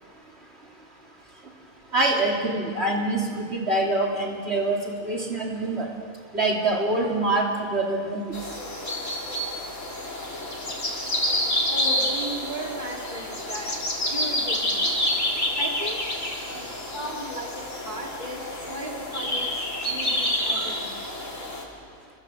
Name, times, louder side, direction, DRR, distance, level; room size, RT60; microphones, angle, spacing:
voice 1, 1.9-5.9 6.3-8.3 20.6-20.7, right 2 dB, 55° right, -1 dB, 3.3 m, -25 dB
sound 1, 8.3-21.6, left 1 dB, 75° left, 4.4 m, -28 dB
voice 2, 11.7-13.7 14.1-14.9 15.6-16.0 16.5-16.7 16.9-21.1, right 1 dB, 35° right, -1 dB, 3.1 m, -36 dB
28.0 x 23.0 x 7.8 m, 2.1 s
omnidirectional pair, 1.3 m